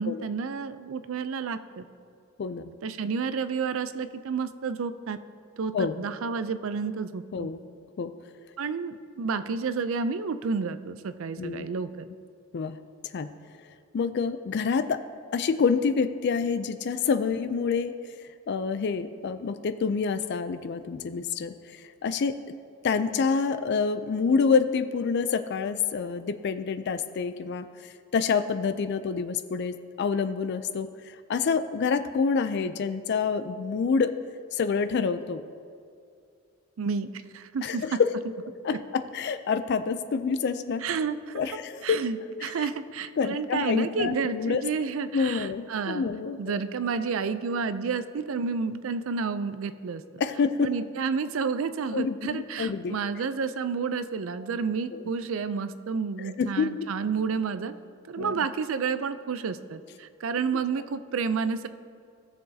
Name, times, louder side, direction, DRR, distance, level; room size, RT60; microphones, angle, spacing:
voice 1, 0.0-1.9 2.8-5.2 5.6-7.5 8.6-12.1 36.8-38.0 38.7-38.8 40.8-41.4 41.8-46.1 46.4-50.0 50.6-57.7 58.1-61.7, right 5 dB, 65° right, 12 dB, 0.4 m, -30 dB
voice 2, 2.4-2.7 5.7-6.0 7.3-7.6 8.0-8.1 11.4-11.7 12.5-12.8 13.1-13.3 13.9-15.0 15.3-17.9 18.5-22.4 22.8-34.1 34.5-35.4 37.6-38.1 38.6-40.8 41.3-42.0 42.4-42.7 43.2-44.6 45.1-46.6 50.2-50.7 51.9-53.0 54.9-55.1 56.4-56.7 58.2-58.4, left 5 dB, 50° left, 11 dB, 0.4 m, -27 dB
16.0 x 6.9 x 2.7 m, 2.4 s
head